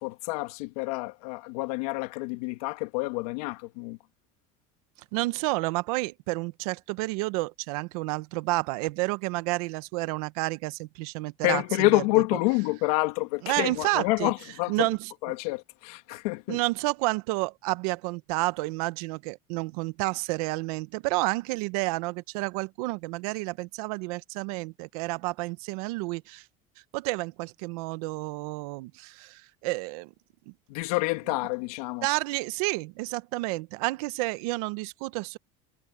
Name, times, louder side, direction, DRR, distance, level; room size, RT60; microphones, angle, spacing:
voice 1, 0.0-4.0 11.4-14.9 15.2-16.6 30.7-32.1, left 23 dB, 80° left, 2.2 m, -28 dB
voice 2, 5.1-12.0 13.4-14.3 14.7-15.1 16.5-26.4 26.9-30.1 30.5-30.6 32.0-35.4, right 22 dB, 75° right, 0.9 m, -30 dB
cardioid pair, 165°, 19 cm